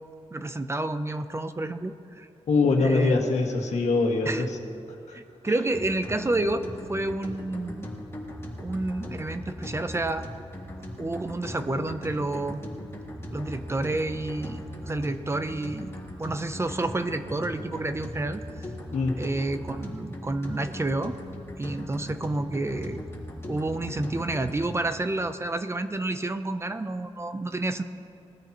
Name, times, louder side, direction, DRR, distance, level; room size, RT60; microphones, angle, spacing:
voice 1, 0.3-2.3 2.8-3.3 4.2-4.5 5.1-7.9 8.6-10.3 11.0-12.6 13.3-18.4 19.2-21.2 21.6-23.0 23.5-27.8, right 2 dB, 25° right, 10 dB, 0.6 m, -29 dB
voice 2, 2.5-4.5 5.1-5.2 18.9-19.1, left 3 dB, 80° left, 1 dB, 1.8 m, -23 dB
sound 1, 5.7-24.9, left 1 dB, 20° left, 2.8 m, -39 dB
20.5 x 13.5 x 3.0 m, 2.8 s
wide cardioid pair, 110°, 12 cm